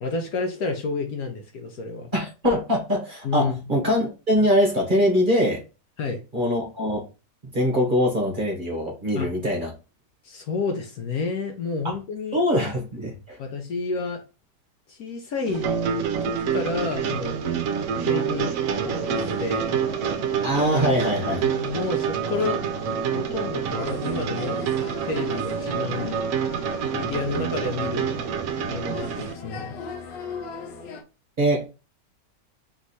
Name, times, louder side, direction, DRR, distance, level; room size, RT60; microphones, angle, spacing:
voice 1, 0.0-2.1 3.2-3.6 6.0-6.2 9.1-9.4 10.2-12.4 13.4-14.2 14.9-15.7 16.2-17.4 18.0-18.5 18.8-19.8 21.4-22.6 23.1-24.6 25.0-26.1 26.9-28.1 28.7-29.8, left 4 dB, 65° left, 4 dB, 1.1 m, -30 dB
voice 2, 2.1-5.6 6.3-7.0 7.5-9.7 12.3-13.4 20.4-21.4 31.4-31.6, equal, 35° right, 0 dB, 1.1 m, -23 dB
sound 1, 15.5-29.3, right 7 dB, 65° right, 0.9 m, -27 dB
sound 2, 18.7-31.0, left 5 dB, 80° left, 1.4 m, -40 dB
3.5 x 3.1 x 4.0 m, 0.31 s
omnidirectional pair, 1.9 m